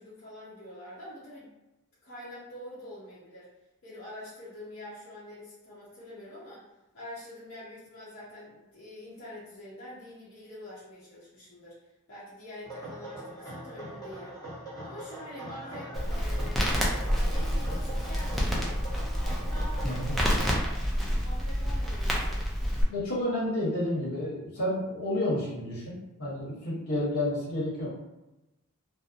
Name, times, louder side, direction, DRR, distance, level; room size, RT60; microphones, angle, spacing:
voice 1, 0.0-1.5 2.0-3.5 3.8-6.6 6.9-11.8 12.1-14.4 14.8-16.8 17.2-18.9 19.4-20.5 21.2-22.5, left 1 dB, 60° left, -10 dB, 0.8 m, -45 dB
sound 1, 12.6-20.7, right 1 dB, 15° left, 0.8 m, -42 dB
Crackle, 15.9-22.8, equal, ahead, 0.4 m, -28 dB
voice 2, 19.8-20.1 22.9-27.9, left 1 dB, 85° left, -6 dB, 1.1 m, -30 dB
2.7 x 2.1 x 2.5 m, 1.0 s
head